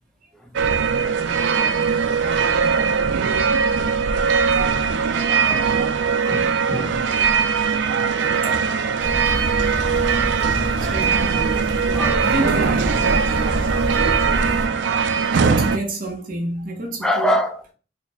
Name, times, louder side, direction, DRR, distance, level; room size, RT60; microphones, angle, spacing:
sound 1, 0.6-15.8, right 6 dB, 85° right, 0.3 m, -20 dB
voice 1, 0.9-1.3 5.0-5.7 6.3-7.1 8.7-8.9 9.6-9.7 11.9-12.5 12.9-13.4 17.0-17.6, equal, 5° left, 0.4 m, -27 dB
sound 2, 9.0-14.7, equal, 55° left, 0.9 m, -28 dB
voice 2, 10.8-11.4 12.2-12.9 14.6-14.8 15.3-17.3, right 1 dB, 50° right, 0.7 m, -28 dB
4.5 x 2.1 x 3.4 m
head